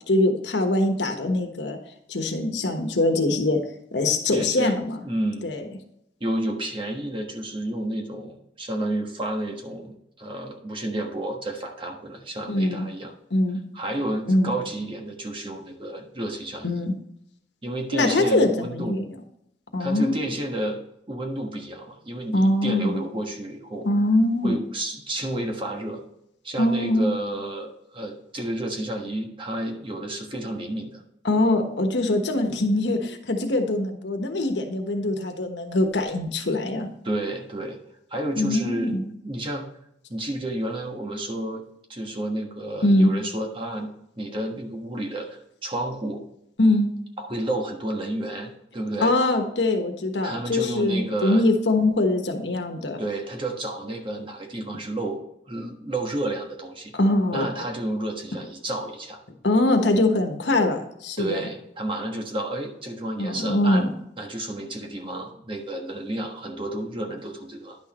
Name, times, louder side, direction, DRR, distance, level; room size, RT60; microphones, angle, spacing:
voice 1, 0.1-1.8 2.1-3.6 3.9-5.1 5.4-5.7 12.5-12.9 13.3-13.6 14.3-14.5 16.6-16.9 17.9-19.1 19.7-20.3 22.3-23.0 23.8-24.6 26.6-27.1 31.2-36.9 38.3-39.0 42.8-43.1 46.6-46.9 49.0-53.0 56.9-57.5 59.4-61.4 63.2-63.9, left 2 dB, 75° left, 5 dB, 1.2 m, -22 dB
voice 2, 4.3-4.8 5.0-5.5 6.2-13.1 13.7-16.7 17.6-19.0 19.8-20.8 21.1-23.9 24.4-26.0 26.4-31.0 37.0-37.8 38.1-39.6 40.1-41.6 41.9-43.9 44.2-46.2 47.2-49.1 50.2-51.5 53.0-56.9 57.3-59.2 61.2-63.9 64.2-67.8, right 1 dB, 30° right, 2 dB, 1.4 m, -31 dB
10.5 x 6.4 x 3.0 m, 0.77 s
head